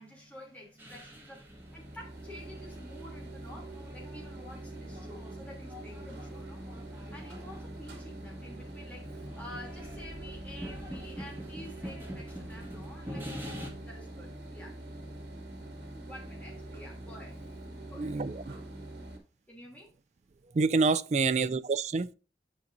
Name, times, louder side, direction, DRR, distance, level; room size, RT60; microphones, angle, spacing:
voice 1, 0.0-3.7 3.9-6.6 6.9-14.8 16.0-17.4 17.9-18.1 19.5-19.9, left 1 dB, 10° left, 2.7 m, -49 dB
sound 1, 0.8-13.7, equal, 10° right, 1.6 m, -46 dB
sound 2, 1.5-19.2, right 1 dB, 85° right, 2.1 m, -44 dB
voice 2, 17.9-18.4 20.5-22.1, right 4 dB, 40° right, 0.3 m, -27 dB
9.9 x 5.3 x 2.6 m
head